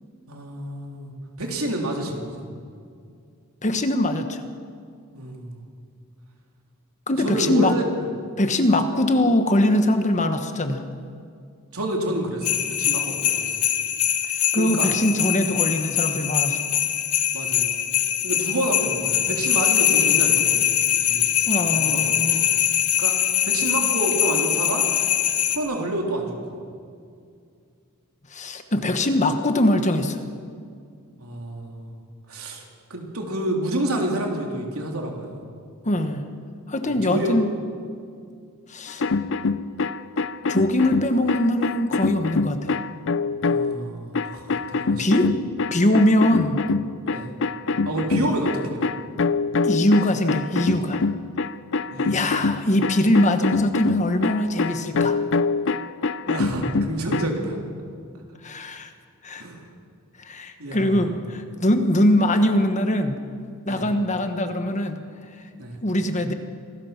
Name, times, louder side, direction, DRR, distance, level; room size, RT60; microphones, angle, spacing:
voice 1, 0.3-2.5 5.1-5.6 7.1-7.8 11.7-13.4 14.5-14.9 17.3-17.7 18.2-20.8 21.1-21.3 21.7-22.6 23.0-23.1 23.4-24.9 25.5-26.4 31.2-32.0 32.3-32.6 32.9-35.4 36.8-37.4 43.5-45.1 47.1-47.3 47.8-48.9 51.9-52.2 56.3-57.6 59.4-59.6 60.6-61.1 63.7-63.9 65.6-65.8, right 1 dB, 75° right, 1 dB, 3.6 m, -28 dB
voice 2, 3.6-4.4 7.1-7.7 8.4-10.8 14.5-16.6 21.5-22.5 28.3-30.2 35.8-36.3 36.7-37.5 38.7-39.0 40.5-42.7 45.0-45.3 45.7-46.6 48.2-48.3 49.6-51.0 52.1-55.2 58.4-58.9 59.2-59.4 60.2-63.2 63.6-65.0 65.8-66.3, left 1 dB, 35° left, 7 dB, 1.4 m, -22 dB
sound 1, 12.4-25.6, left 11 dB, 85° left, 1.6 m, -22 dB
sound 2, 38.9-43.8 44.1-57.3, left 4 dB, 60° left, 0.7 m, -24 dB
26.5 x 19.0 x 5.9 m, 2.3 s
head